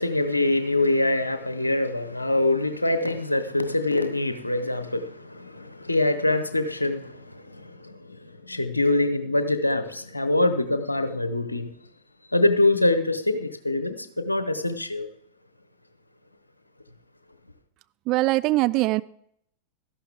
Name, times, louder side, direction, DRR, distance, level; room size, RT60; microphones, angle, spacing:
voice 1, 0.0-11.7 12.3-15.1, left 2 dB, 85° left, 1.0 m, -24 dB
voice 2, 18.1-19.0, right 19 dB, 40° right, 0.4 m, -22 dB
13.5 x 11.5 x 3.7 m
figure-of-eight pair, 90°, 0 cm